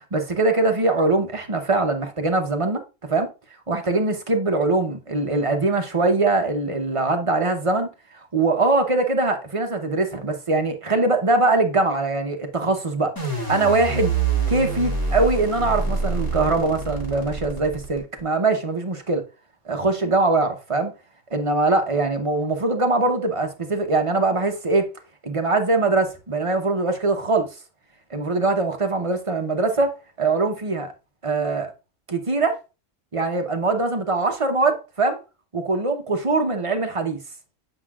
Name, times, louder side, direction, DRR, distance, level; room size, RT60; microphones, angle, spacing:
voice 1, 0.0-3.3 3.7-7.9 8.3-14.1 14.5-19.2 19.7-20.9 21.3-24.8 25.2-27.5 28.1-30.9 31.2-31.7 32.1-32.6 33.1-35.2 35.5-37.2, right 3 dB, 30° right, 0.8 m, -22 dB
sound 1, 13.2-18.2, right 4 dB, 15° left, 2.1 m, -26 dB
8.0 x 5.6 x 2.4 m
omnidirectional pair, 1.3 m